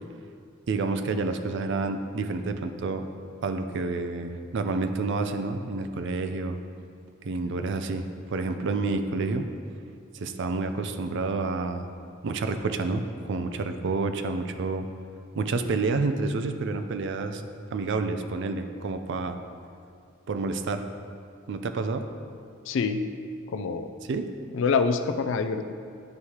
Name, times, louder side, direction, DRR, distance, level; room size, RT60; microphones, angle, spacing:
voice 1, 0.7-3.0 3.4-6.6 7.2-8.1 8.3-9.5 10.1-11.9 12.2-14.9 15.3-17.4 17.7-19.4 20.3-20.8 21.5-22.1 24.1-24.3, right 3 dB, 60° right, 8 dB, 0.4 m, -29 dB
voice 2, 22.7-23.0 23.5-23.9 24.5-25.7, left 5 dB, 65° left, 9 dB, 0.3 m, -26 dB
9.6 x 4.7 x 2.8 m, 2.4 s
head